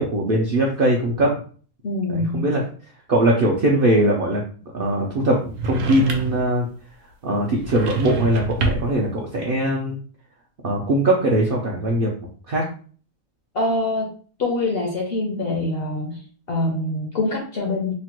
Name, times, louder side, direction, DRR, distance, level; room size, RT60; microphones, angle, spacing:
voice 1, 0.0-1.3 2.1-2.6 3.1-4.4 4.7-6.7 7.2-10.0 10.6-12.1 12.5-12.6, right 1 dB, 70° right, -1 dB, 0.5 m, -21 dB
voice 2, 1.8-2.5 13.5-14.1 14.4-16.2 16.5-17.9, left 2 dB, 60° left, 0 dB, 0.6 m, -24 dB
sound 1, 5.6-6.5 7.6-9.0, right 3 dB, 85° right, 1.1 m, -26 dB
3.0 x 2.1 x 2.9 m, 0.43 s
omnidirectional pair, 1.5 m